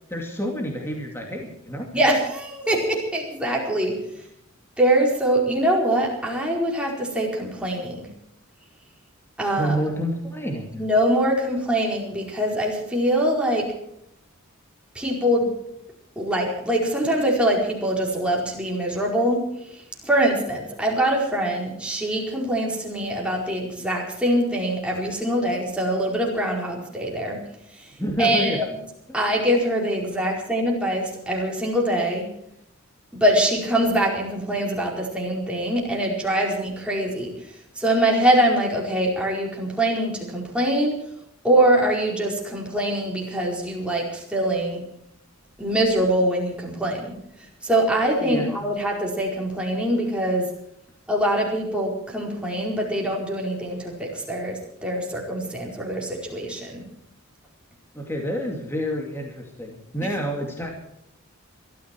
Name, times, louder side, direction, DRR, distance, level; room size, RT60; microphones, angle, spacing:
voice 1, 0.1-1.9 9.6-10.7 28.0-28.7 29.1-29.2 48.2-48.5 57.9-60.7, equal, 10° left, 1 dB, 2.5 m, -28 dB
voice 2, 1.9-4.0 4.8-8.1 9.4-9.8 10.7-13.7 14.9-15.5 16.2-19.4 20.0-27.4 27.8-27.9 28.2-28.6 29.1-32.2 33.1-37.3 37.7-41.0 41.4-44.8 45.6-47.1 47.6-50.5 51.1-56.8, right 1 dB, 5° right, -2 dB, 4.7 m, -23 dB
22.0 x 14.0 x 4.6 m, 0.75 s
head